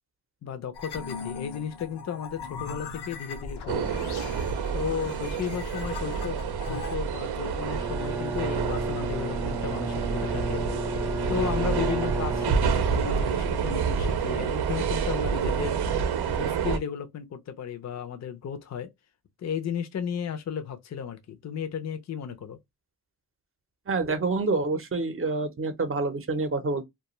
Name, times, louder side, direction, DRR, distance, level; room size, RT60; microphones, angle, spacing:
voice 1, 0.4-4.0 4.7-6.4 6.7-10.7 11.3-15.8 16.3-18.9 19.4-22.6, left 8 dB, 45° left, 0.5 m, -34 dB
sound 1, 0.7-7.0, left 4 dB, 85° left, 0.7 m, -39 dB
sound 2, 3.7-16.8, right 6 dB, 75° right, 0.6 m, -28 dB
Bowed string instrument, 7.7-13.2, right 1 dB, 5° right, 0.3 m, -33 dB
voice 2, 23.9-26.8, right 3 dB, 35° right, 0.7 m, -27 dB
2.3 x 2.3 x 2.9 m
cardioid pair, 70°, 39 cm